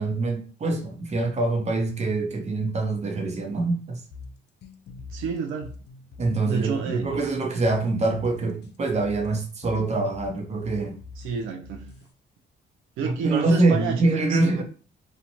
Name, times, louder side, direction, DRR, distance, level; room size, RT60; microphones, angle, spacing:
voice 1, 0.0-4.0 6.2-11.0 13.0-14.6, right 2 dB, 35° right, 0.7 m, -25 dB
sound 1, 4.1-12.1, left 4 dB, 55° left, 0.4 m, -44 dB
voice 2, 5.1-5.7 6.5-7.2 11.2-11.9 13.0-14.6, right 6 dB, 90° right, 0.5 m, -29 dB
2.6 x 2.1 x 2.9 m
cardioid pair, 90°, 20 cm